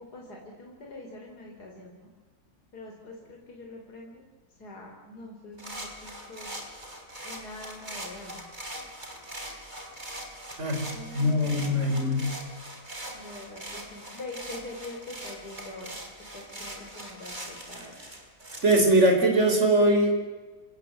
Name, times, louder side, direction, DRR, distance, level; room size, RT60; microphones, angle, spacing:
voice 1, 0.0-2.1 2.7-4.2 4.6-6.5 7.2-8.4 10.9-11.9 13.1-16.0 16.3-17.9, left 2 dB, 80° left, 0 dB, 4.1 m, -44 dB
sound 1, 5.6-18.8, right 1 dB, 30° right, 4.0 m, -41 dB
voice 2, 11.1-12.3 18.6-20.1, right 1 dB, 45° right, 4 dB, 4.7 m, -21 dB
28.0 x 17.5 x 7.9 m, 1.3 s
omnidirectional pair, 1.7 m